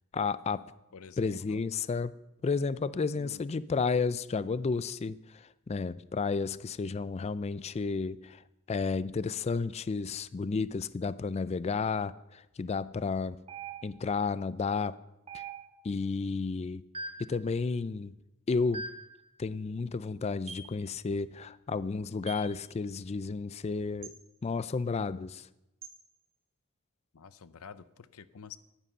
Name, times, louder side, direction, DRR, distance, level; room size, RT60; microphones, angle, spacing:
voice 1, 0.1-0.7 1.2-2.2 2.4-8.4 8.7-13.4 13.8-15.0 15.3-15.4 15.8-16.8 17.2-18.1 18.5-18.9 19.4-24.1 24.4-25.5, left 4 dB, 30° left, 17 dB, 0.3 m, -32 dB
voice 2, 0.9-1.6 3.2-3.5 27.1-28.6, left 6 dB, 75° left, 15 dB, 0.6 m, -48 dB
sound 1, 13.5-14.2 15.3-16.0 16.9-17.4 18.7-19.2 20.5-20.8 22.3-22.5 24.0-24.2 25.8-26.0, right 3 dB, 30° right, 1.3 m, -42 dB
14.5 x 10.0 x 5.5 m, 0.93 s
head